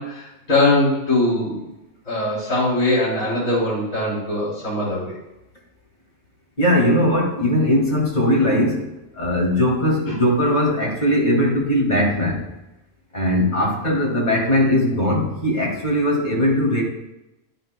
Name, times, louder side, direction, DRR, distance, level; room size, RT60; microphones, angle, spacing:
voice 1, 0.0-1.6 2.1-5.1, left 2 dB, 80° left, -10 dB, 4.1 m, -21 dB
voice 2, 6.6-8.9 9.1-12.4 13.1-16.8, left 1 dB, 30° left, -3 dB, 2.6 m, -19 dB
11.0 x 9.1 x 2.2 m, 0.94 s
omnidirectional pair, 1.4 m